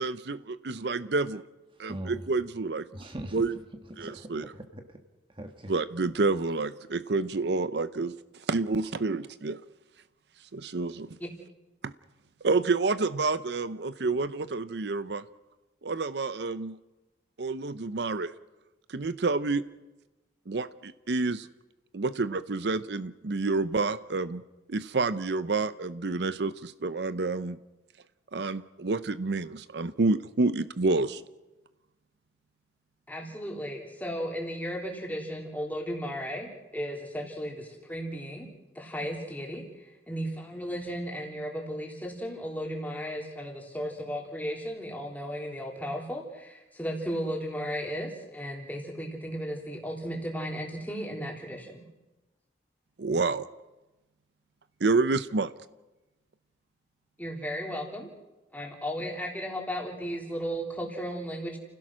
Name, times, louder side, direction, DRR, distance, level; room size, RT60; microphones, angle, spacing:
voice 1, 0.0-1.4 1.8-2.8 3.3-3.6 4.0-4.4 5.7-8.1 8.5-9.6 10.5-11.1 11.8-11.9 12.4-15.2 15.8-16.8 17.4-18.3 18.9-19.6 20.5-21.5 21.9-24.4 24.7-27.6 28.3-31.2 53.0-53.5 54.8-55.5, right 3 dB, 65° right, 14 dB, 0.7 m, -28 dB
voice 2, 1.9-2.2 2.9-3.4 4.0-4.8 5.4-5.7, right 1 dB, 30° right, 5 dB, 1.5 m, -40 dB
voice 3, 33.1-51.8 57.2-58.1 58.5-61.6, equal, 10° left, 1 dB, 3.4 m, -35 dB
30.0 x 16.5 x 6.3 m, 1.1 s
head